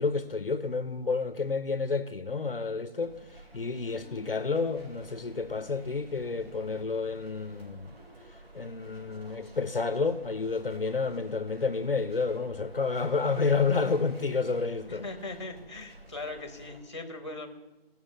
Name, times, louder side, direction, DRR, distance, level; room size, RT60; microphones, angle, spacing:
voice 1, 0.0-3.2 3.5-7.9 8.5-15.1, left 4 dB, 65° left, 0.8 m, -30 dB
sound 1, 3.0-16.8, right 1 dB, 75° right, 3.7 m, -51 dB
voice 2, 14.9-17.5, left 2 dB, 30° left, 1.1 m, -39 dB
15.0 x 6.2 x 7.3 m
figure-of-eight pair, 175°, 31 cm